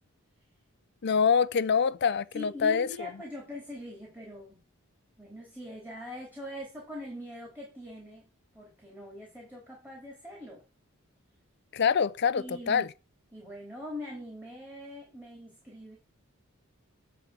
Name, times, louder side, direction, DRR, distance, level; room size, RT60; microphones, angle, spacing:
voice 1, 1.0-3.1 11.7-12.9, left 6 dB, 55° left, 0.5 m, -25 dB
voice 2, 2.3-4.6 5.2-8.3 8.5-10.6 12.3-12.9 13.3-16.0, left 1 dB, 10° right, 3.3 m, -42 dB
9.2 x 4.7 x 7.5 m
head